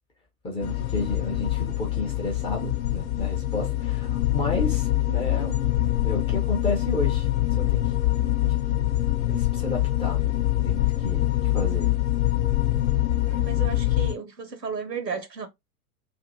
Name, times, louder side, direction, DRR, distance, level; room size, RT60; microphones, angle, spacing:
voice 1, 0.4-5.5 6.0-7.9 8.4-8.9 9.3-10.3 10.6-11.9, left 2 dB, 10° left, 0.5 m, -32 dB
sound 1, 0.6-14.1, left 14 dB, 60° left, 0.6 m, -24 dB
voice 2, 13.3-15.5, right 5 dB, 90° right, 0.9 m, -34 dB
2.6 x 2.5 x 2.6 m
figure-of-eight pair, 100°, 48 cm